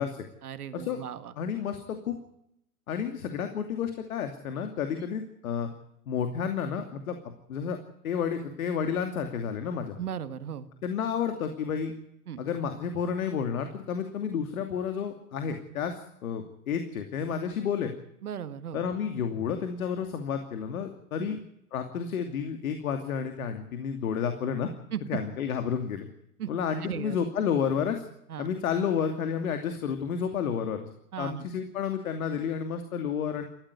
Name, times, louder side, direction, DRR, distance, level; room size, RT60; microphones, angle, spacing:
voice 1, 0.4-1.3 10.0-10.7 12.3-12.4 18.2-18.8 21.2-21.4 24.9-25.2 26.4-26.5 26.8-27.2 28.3-28.5 31.1-31.4, right 9 dB, 80° right, 11 dB, 1.9 m, -36 dB
voice 2, 1.4-2.2 2.9-5.7 6.1-7.2 7.5-7.8 8.0-10.0 10.8-11.9 12.4-17.9 18.7-21.4 21.7-24.7 25.1-26.1 26.5-28.0 28.4-30.9 31.2-33.5, left 7 dB, 70° left, 6 dB, 2.8 m, -31 dB
20.5 x 15.0 x 9.4 m, 0.79 s
hypercardioid pair, 120°, 44 cm